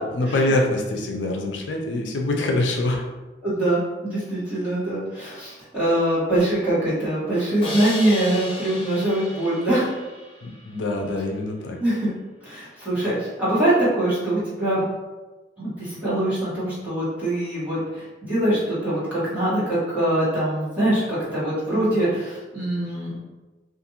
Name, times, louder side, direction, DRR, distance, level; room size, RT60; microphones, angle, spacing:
voice 1, 0.0-3.0 10.4-11.8, left 2 dB, 80° left, 1 dB, 0.4 m, -24 dB
voice 2, 3.4-9.9 11.8-12.1 12.4-14.8 15.6-23.3, right 1 dB, 10° right, -11 dB, 1.3 m, -23 dB
Crash cymbal, 7.6-10.7, left 2 dB, 30° left, 0.6 m, -34 dB
2.5 x 2.5 x 2.8 m, 1.2 s
head